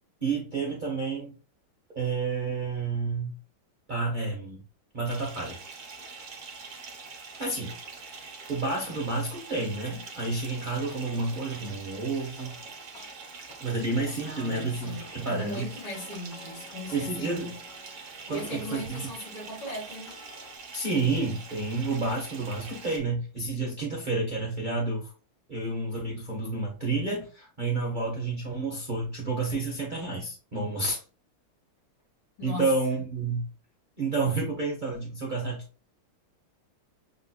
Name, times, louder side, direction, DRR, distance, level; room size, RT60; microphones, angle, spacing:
voice 1, 0.2-1.3 1.9-3.3 3.9-4.6 4.9-5.6 7.4-7.7 8.5-12.5 13.6-15.6 16.9-17.5 18.3-19.0 20.7-25.1 25.5-31.0 32.4-33.5 34.0-35.6, right 3 dB, 75° right, 0.4 m, -30 dB
Bathtub (filling or washing) / Fill (with liquid), 5.0-23.0, right 4 dB, 55° right, 1.2 m, -44 dB
sound 1, 10.6-13.1 13.5-19.1 19.5-20.6, left 4 dB, 60° left, 1.0 m, -52 dB
voice 2, 14.2-17.6 18.3-20.2 32.4-32.7, left 1 dB, 85° left, 2.9 m, -38 dB
6.8 x 2.7 x 2.2 m
omnidirectional pair, 2.4 m